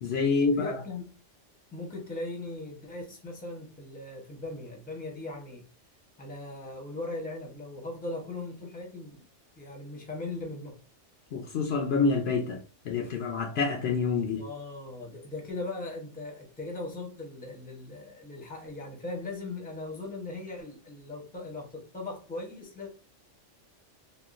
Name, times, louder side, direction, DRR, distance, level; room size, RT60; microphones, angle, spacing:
voice 1, 0.0-0.8 11.3-14.4, left 4 dB, 65° left, 0.8 m, -27 dB
voice 2, 0.5-1.1 1.7-5.6 6.2-9.2 9.6-10.8 14.4-22.9, left 2 dB, 10° left, 0.7 m, -39 dB
3.6 x 2.3 x 2.4 m
omnidirectional pair, 1.2 m